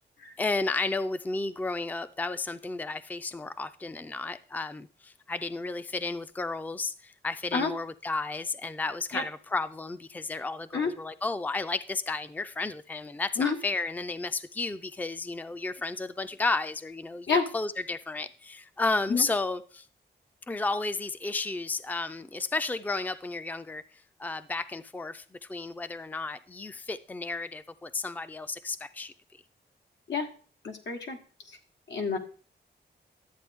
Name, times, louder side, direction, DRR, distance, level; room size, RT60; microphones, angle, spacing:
voice 1, 0.4-19.9 20.5-23.8 24.2-29.1, left 3 dB, 10° left, 0.4 m, -33 dB
voice 2, 30.6-31.2 31.5-31.6 31.9-32.2, left 5 dB, 85° left, 1.8 m, -28 dB
12.0 x 8.3 x 3.6 m
wide cardioid pair, 110°, 18 cm